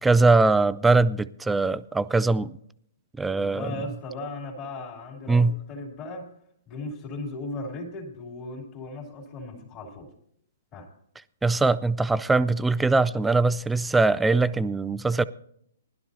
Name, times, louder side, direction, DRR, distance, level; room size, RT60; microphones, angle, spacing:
voice 1, 0.0-2.5 3.2-3.7 5.3-5.6 11.4-15.2, right 3 dB, 5° right, 0.4 m, -21 dB
voice 2, 3.3-6.3 6.7-10.1 10.7-10.9, left 2 dB, 30° left, 2.8 m, -37 dB
19.5 x 12.0 x 2.7 m
hypercardioid pair, 130°, 0 cm